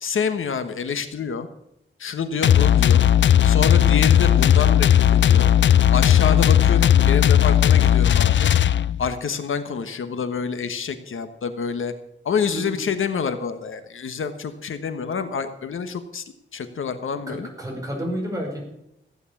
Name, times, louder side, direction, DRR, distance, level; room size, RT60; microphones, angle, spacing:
voice 1, 0.0-1.5 2.0-3.0 3.4-5.5 5.9-8.5 9.0-11.9 12.2-16.2 16.5-17.5, left 6 dB, 85° left, 9 dB, 1.3 m, -27 dB
sound 1, 2.4-9.1, left 10 dB, 65° left, 0.4 m, -16 dB
voice 2, 17.3-18.6, equal, 15° right, -1 dB, 5.7 m, -30 dB
15.0 x 9.4 x 7.2 m, 0.82 s
wide cardioid pair, 145°, 20 cm